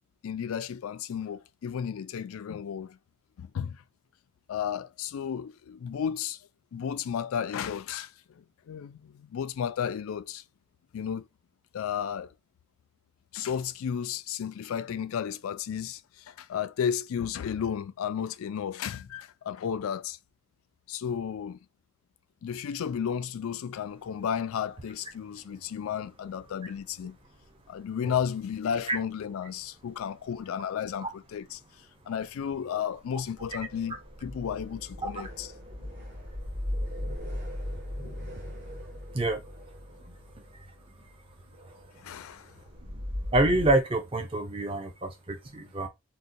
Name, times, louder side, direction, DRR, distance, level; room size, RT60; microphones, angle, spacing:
voice 1, 0.2-3.0 3.4-3.8 4.5-6.4 6.7-10.4 10.9-11.3 11.7-12.3 13.3-20.2 20.9-21.6 22.4-27.2 27.7-35.5 42.0-42.5, left 8 dB, 80° left, 0.3 m, -33 dB
sound 1, 33.4-43.8, left 1 dB, 55° right, 1.8 m, -38 dB
voice 2, 40.1-40.5 42.8-43.1 43.3-45.9, right 2 dB, 25° right, 0.6 m, -27 dB
4.0 x 2.2 x 2.6 m
head